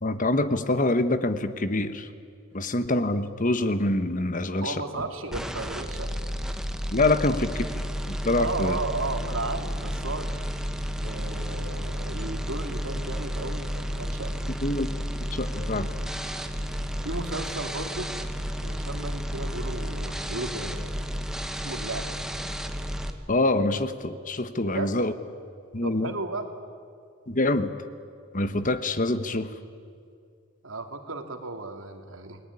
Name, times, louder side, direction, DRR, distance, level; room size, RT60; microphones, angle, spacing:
voice 1, 0.0-2.1 2.5-4.7 6.9-8.8 14.6-14.9 15.3-15.9 23.3-25.1 25.7-26.1 27.3-27.7 28.3-29.5, left 2 dB, 40° left, 11 dB, 1.3 m, -25 dB
voice 2, 4.6-6.1 7.2-7.3 8.4-10.3 11.0-14.3 16.6-16.7 17.0-18.1 18.6-20.8 21.6-22.2 24.6-24.9 25.8-26.5 30.6-32.4, right 3 dB, 80° right, 5 dB, 2.8 m, -34 dB
sound 1, 5.3-23.1, equal, 5° right, 1.6 m, -32 dB
29.0 x 20.0 x 9.9 m, 2.3 s
head